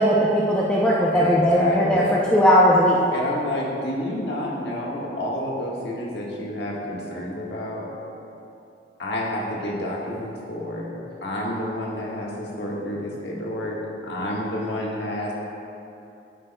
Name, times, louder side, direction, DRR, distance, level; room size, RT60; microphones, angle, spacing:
voice 1, 0.0-2.0 2.3-3.0, equal, 5° left, -6 dB, 0.5 m, -18 dB
voice 2, 1.1-2.2 3.1-7.9 9.0-11.0 11.2-13.8 14.0-15.3, left 1 dB, 70° left, -4 dB, 1.5 m, -29 dB
10.0 x 8.7 x 2.2 m, 2.7 s
head